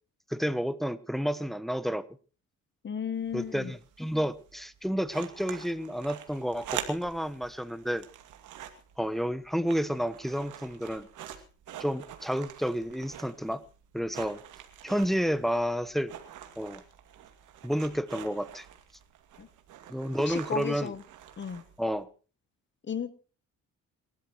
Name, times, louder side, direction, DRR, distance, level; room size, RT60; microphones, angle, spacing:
voice 1, 0.3-2.0 3.3-8.0 9.0-11.1 11.8-13.6 13.9-14.4 14.8-16.1 16.6-16.8 17.6-18.6 19.9-20.9 21.8-22.1, equal, ahead, 11 dB, 1.1 m, -30 dB
voice 2, 2.8-3.7 19.4-19.5 20.2-21.0 21.4-21.6 22.9-23.1, left 7 dB, 40° left, 14 dB, 1.1 m, -34 dB
sound 1, 3.1-22.0, right 10 dB, 85° right, 2.4 m, -46 dB
27.5 x 13.0 x 3.1 m, 0.37 s
cardioid pair, 90°, 30 cm